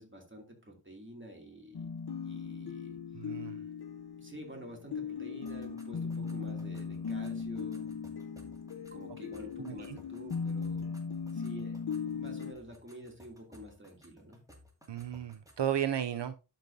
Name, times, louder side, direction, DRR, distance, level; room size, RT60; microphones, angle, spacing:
voice 1, 0.0-1.9 2.2-3.0 4.2-7.9 8.9-10.9 11.3-14.4, equal, 30° right, 2.7 m, -49 dB
sound 1, 1.7-12.5, left 5 dB, 65° left, 0.8 m, -38 dB
voice 2, 3.1-3.6 9.6-10.0 14.9-16.3, right 10 dB, 80° right, 0.5 m, -34 dB
sound 2, 5.4-15.8, equal, 10° right, 2.0 m, -60 dB
12.0 x 5.3 x 2.6 m
wide cardioid pair, 45°, 42 cm